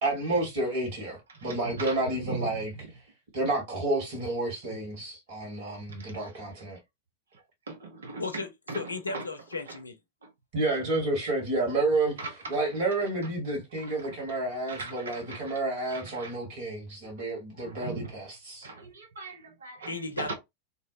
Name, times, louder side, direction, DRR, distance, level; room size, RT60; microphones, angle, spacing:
voice 1, 0.0-2.7 3.3-6.8 10.5-18.7, right 2 dB, 50° right, 1.4 m, -30 dB
voice 2, 1.4-2.0 2.2-2.5 6.0-6.1 7.7-8.4 8.7-8.8 9.1-9.2 12.2-12.3 14.7-15.4 15.9-16.3 17.6-18.1 18.6-20.3, right 3 dB, 70° right, 0.6 m, -38 dB
voice 3, 8.2-10.0 19.9-20.3, left 3 dB, 80° left, 0.5 m, -35 dB
2.6 x 2.0 x 2.5 m
figure-of-eight pair, 90°, 0 cm